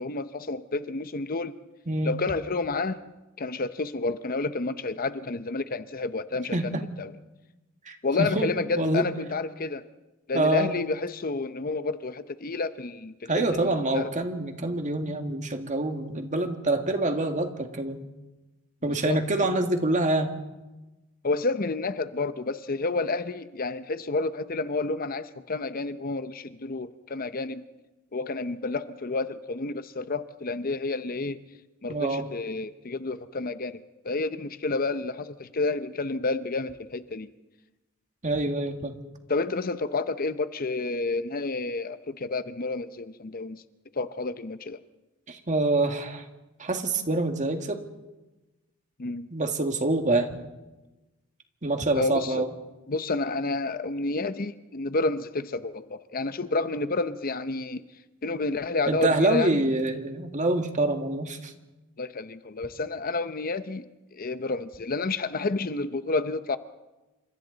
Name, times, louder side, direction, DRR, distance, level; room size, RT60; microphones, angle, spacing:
voice 1, 0.0-1.5 2.0-3.0 3.4-6.6 7.0-7.1 8.0-9.8 10.3-14.1 18.8-19.5 21.2-27.6 28.1-31.4 31.8-37.3 39.3-43.6 43.9-44.8 49.0-49.3 51.9-52.4 52.9-57.8 58.2-59.6 62.0-63.8 64.1-66.6, left 3 dB, 45° left, 12 dB, 0.8 m, -30 dB
voice 2, 6.5-6.8 7.9-9.0 10.3-10.7 13.3-18.0 18.8-20.3 31.9-32.3 38.2-39.0 45.3-46.2 46.6-47.9 49.3-50.3 51.6-52.5 58.9-61.5, right 2 dB, 40° right, 5 dB, 2.0 m, -26 dB
29.0 x 26.5 x 4.0 m, 1.1 s
head